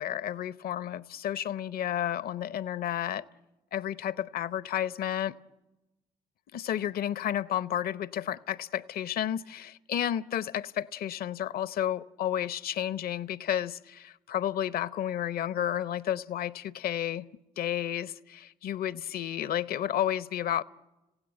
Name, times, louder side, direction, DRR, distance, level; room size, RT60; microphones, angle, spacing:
voice 1, 0.0-3.2 3.7-5.4 6.5-17.3 17.6-20.6, left 10 dB, 60° left, 0.8 m, -31 dB
30.0 x 17.0 x 9.1 m
hypercardioid pair, 45°, 18 cm